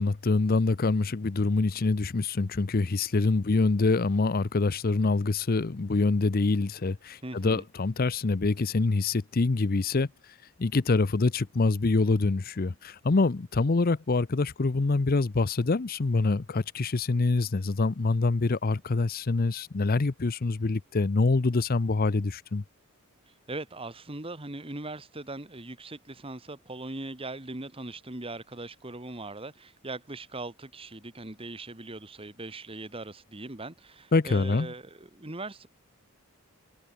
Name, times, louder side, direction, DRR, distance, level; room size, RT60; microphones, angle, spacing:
voice 1, 0.0-10.1 10.6-22.6 34.1-34.7, left 3 dB, 40° left, 0.6 m, -25 dB
voice 2, 7.2-7.7 23.5-35.7, right 2 dB, 25° right, 1.6 m, -40 dB
head